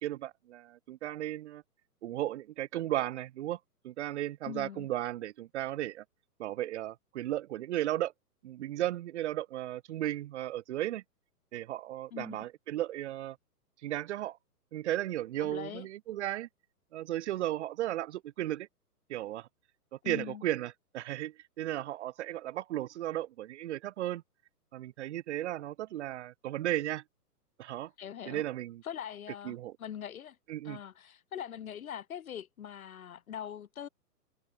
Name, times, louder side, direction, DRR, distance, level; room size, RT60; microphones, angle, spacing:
voice 1, 0.0-1.6 2.0-3.6 3.8-6.0 6.4-8.1 8.4-11.0 11.5-13.4 13.8-14.4 14.7-16.5 16.9-18.7 19.1-19.5 20.1-24.2 24.7-27.0 27.6-27.9 28.3-28.8 29.4-29.7 30.5-30.8, right 13 dB, 45° right, 2.0 m, -35 dB
voice 2, 4.4-4.9 12.1-12.4 15.4-15.9 20.0-20.4 28.0-28.4 28.8-30.4 30.6-33.9, left 9 dB, 60° left, 1.9 m, -42 dB
figure-of-eight pair, 125°, 47 cm